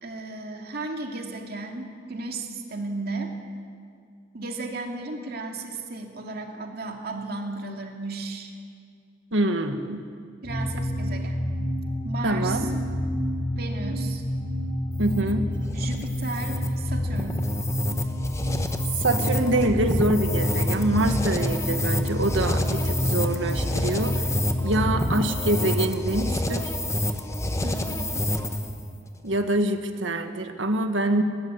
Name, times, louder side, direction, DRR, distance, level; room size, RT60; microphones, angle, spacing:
voice 1, 0.0-3.3 4.3-8.5 10.4-11.5 12.0-12.7 13.6-14.2 15.7-17.5 27.6-28.3, right 3 dB, 55° right, 2 dB, 2.4 m, -35 dB
voice 2, 9.3-10.0 12.2-12.7 15.0-15.5 19.0-24.3 24.6-26.7 29.2-31.2, right 1 dB, 85° right, 6 dB, 1.7 m, -25 dB
sound 1, 10.4-25.2, left 1 dB, 35° left, 6.5 m, -29 dB
sound 2, 14.9-28.8, left 1 dB, 15° left, 1.1 m, -28 dB
20.0 x 18.5 x 8.2 m, 2.3 s
head